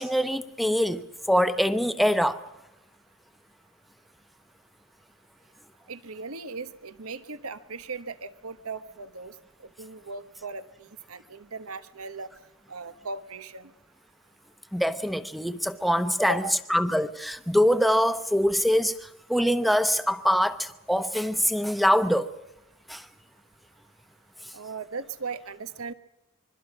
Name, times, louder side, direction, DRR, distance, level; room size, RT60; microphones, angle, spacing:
voice 1, 0.0-2.4 14.7-16.4 16.7-18.9 19.3-22.3 22.9-23.0, equal, ahead, 0.8 m, -24 dB
voice 2, 5.9-9.3 9.6-12.3 12.7-13.7 16.2-16.5 24.5-25.9, right 4 dB, 75° right, 1.2 m, -38 dB
25.5 x 23.0 x 6.1 m
head